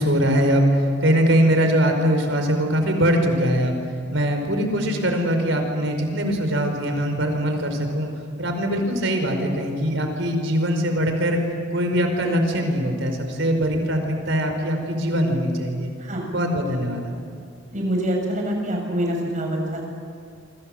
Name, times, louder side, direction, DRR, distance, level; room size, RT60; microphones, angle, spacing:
voice 1, 0.0-3.8 4.1-8.1 8.4-11.4 11.7-15.9 16.3-17.1, equal, 70° right, 5 dB, 4.9 m, -22 dB
voice 2, 17.7-19.8, equal, 40° right, 1 dB, 7.2 m, -25 dB
27.5 x 25.5 x 7.8 m, 2.2 s
head